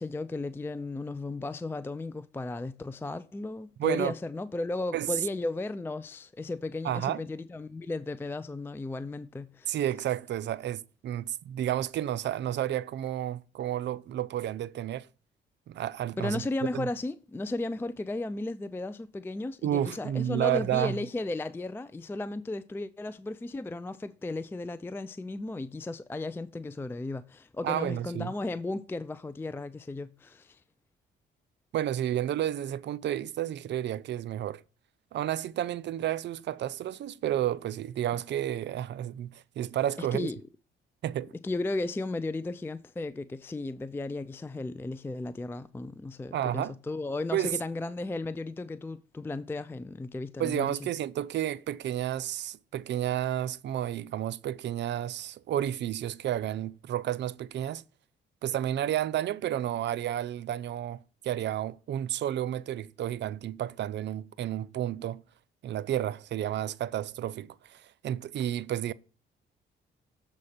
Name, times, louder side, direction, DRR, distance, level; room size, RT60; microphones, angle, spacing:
voice 1, 0.0-9.8 16.2-30.6 40.0-40.4 41.4-50.8, left 2 dB, 10° left, 0.4 m, -35 dB
voice 2, 3.8-4.1 4.9-5.1 6.8-7.2 9.7-15.1 15.7-16.4 16.7-16.9 19.6-21.0 27.6-28.3 31.7-34.6 35.1-40.3 41.0-41.3 46.3-46.7 47.3-47.6 50.4-57.8 58.4-65.2 65.6-68.9, right 11 dB, 65° right, 0.5 m, -31 dB
7.4 x 4.2 x 6.6 m
cardioid pair, 90°, 20 cm